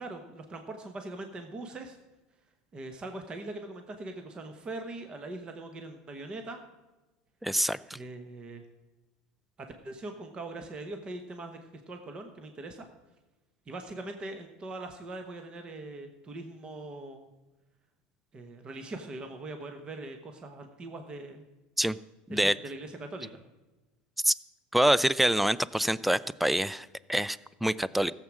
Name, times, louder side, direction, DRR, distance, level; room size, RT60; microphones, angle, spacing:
voice 1, 0.0-2.0 2.7-6.6 7.9-8.6 9.6-11.6 11.9-12.9 13.7-17.3 18.3-21.4 22.3-23.4, right 2 dB, 25° right, 6 dB, 1.1 m, -41 dB
voice 2, 7.4-8.0 21.8-22.0 22.3-22.6 24.2-24.3 24.7-28.1, right 1 dB, ahead, 19 dB, 0.3 m, -26 dB
15.0 x 7.5 x 6.2 m, 1.1 s
supercardioid pair, 135°, 4 cm